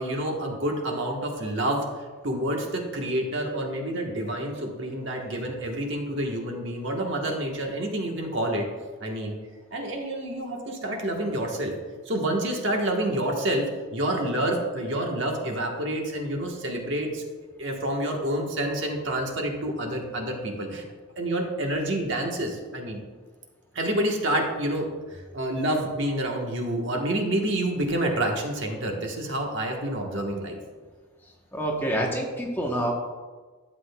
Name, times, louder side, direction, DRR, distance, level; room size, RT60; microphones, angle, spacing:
voice 1, 0.0-1.9 2.2-8.7 9.0-9.3 9.7-11.7 12.0-17.2 17.6-20.8 21.2-23.0 23.7-30.6, right 1 dB, 55° right, 1 dB, 1.2 m, -28 dB
voice 2, 31.5-32.9, right 1 dB, 10° left, -1 dB, 0.9 m, -27 dB
11.5 x 7.7 x 2.3 m, 1.4 s
head